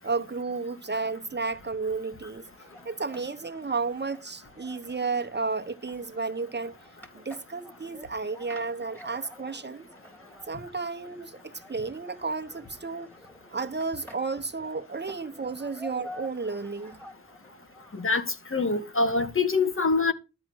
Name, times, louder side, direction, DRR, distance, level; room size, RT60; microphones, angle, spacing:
voice 1, 0.0-2.4 2.8-6.8 7.1-9.9 10.5-13.1 13.5-17.0, right 4 dB, 35° right, 1.1 m, -32 dB
sound 1, 2.4-18.1, left 1 dB, 5° left, 4.1 m, -50 dB
voice 2, 17.9-20.1, left 4 dB, 45° left, 1.7 m, -25 dB
13.0 x 5.1 x 7.8 m
wide cardioid pair, 85°, 30 cm